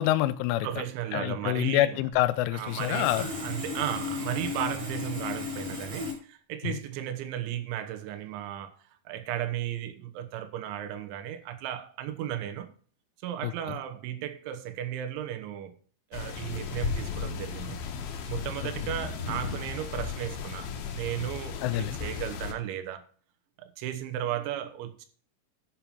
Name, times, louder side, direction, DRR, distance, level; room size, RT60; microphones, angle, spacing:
voice 1, 0.0-0.7 1.1-3.3 6.6-6.7 13.4-13.8 21.6-22.0, left 14 dB, 85° left, 3.0 m, -27 dB
voice 2, 0.6-2.0 2.5-8.8 9.1-12.7 13.2-15.8 16.1-17.9 18.3-23.1 23.6-25.1, right 11 dB, 75° right, 3.4 m, -35 dB
Sawing, 2.6-6.1, left 4 dB, 35° right, 6.1 m, -35 dB
sound 1, 16.1-22.5, left 6 dB, 65° left, 2.6 m, -35 dB
11.5 x 5.6 x 6.0 m
omnidirectional pair, 5.8 m